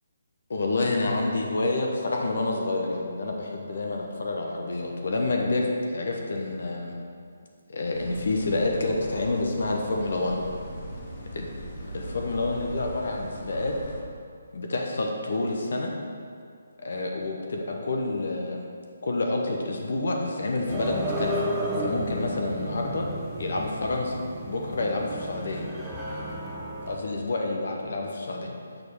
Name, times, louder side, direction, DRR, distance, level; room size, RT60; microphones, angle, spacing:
voice 1, 0.5-7.0 7.7-10.4 11.3-11.5 11.9-13.7 14.5-15.9 16.8-18.7 19.0-21.4 21.8-23.0 23.4-24.2 24.4-25.7 26.9-28.6, left 2 dB, 60° left, 0 dB, 1.0 m, -28 dB
sound 1, 7.9-14.0, right 1 dB, 35° left, 1.9 m, -39 dB
sound 2, 20.7-27.0, equal, 10° right, 1.1 m, -32 dB
6.7 x 6.3 x 4.8 m, 2.3 s
figure-of-eight pair, 145°, 0 cm